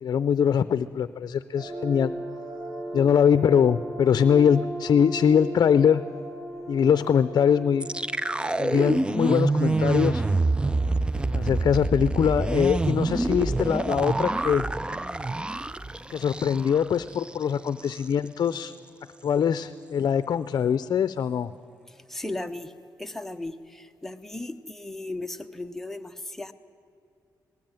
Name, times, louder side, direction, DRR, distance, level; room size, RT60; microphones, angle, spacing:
voice 1, 0.0-2.1 2.9-6.0 6.7-7.9 8.6-10.2 11.3-14.7 16.1-18.7 19.2-21.5, left 8 dB, 65° left, 13 dB, 0.5 m, -22 dB
sound 1, 1.5-11.4, right 1 dB, 75° right, 4.9 m, -38 dB
sound 2, 7.8-16.8 17.1-17.3 17.7-18.0, right 2 dB, 15° right, 0.4 m, -26 dB
voice 2, 21.9-22.7 23.0-26.5, left 2 dB, 5° left, 6 dB, 1.0 m, -36 dB
19.5 x 19.0 x 9.0 m, 2.6 s
cardioid pair, 110°, 7 cm